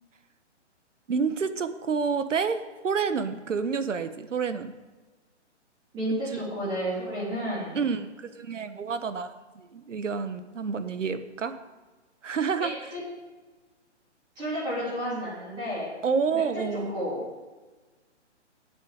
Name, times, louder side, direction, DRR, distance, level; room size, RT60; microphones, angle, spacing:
voice 1, 1.1-4.7 6.3-6.4 7.7-11.5 12.2-12.7 16.0-16.9, right 5 dB, 85° right, 10 dB, 1.4 m, -29 dB
voice 2, 5.9-7.8 12.5-13.0 14.3-15.9 16.3-17.2, equal, 10° right, -8 dB, 3.3 m, -32 dB
8.4 x 7.7 x 8.9 m, 1.3 s
hypercardioid pair, 170°, 36 cm